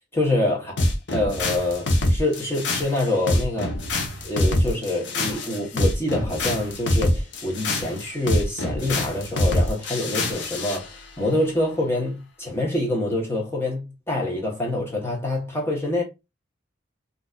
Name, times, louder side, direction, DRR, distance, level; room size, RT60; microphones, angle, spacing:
voice 1, 0.1-0.7 1.1-3.8 4.2-16.0, left 1 dB, 15° left, 1.1 m, -26 dB
sound 1, 0.8-10.8, left 1 dB, 70° left, 0.8 m, -24 dB
3.8 x 2.7 x 2.3 m
head